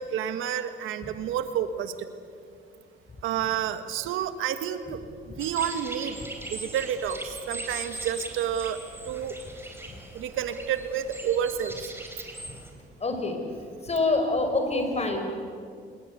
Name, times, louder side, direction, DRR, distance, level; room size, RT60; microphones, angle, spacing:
voice 1, 0.0-2.1 3.2-5.0 5.4-6.2 6.5-8.8 9.0-9.3 10.1-11.9, right 9 dB, 90° right, 10 dB, 1.6 m, -29 dB
sound 1, 5.4-12.7, right 2 dB, 10° right, 4.8 m, -40 dB
voice 2, 13.0-13.4 13.8-15.2, left 3 dB, 35° left, 5 dB, 5.5 m, -26 dB
26.5 x 20.5 x 8.3 m, 2.2 s
cardioid pair, 90°, 20 cm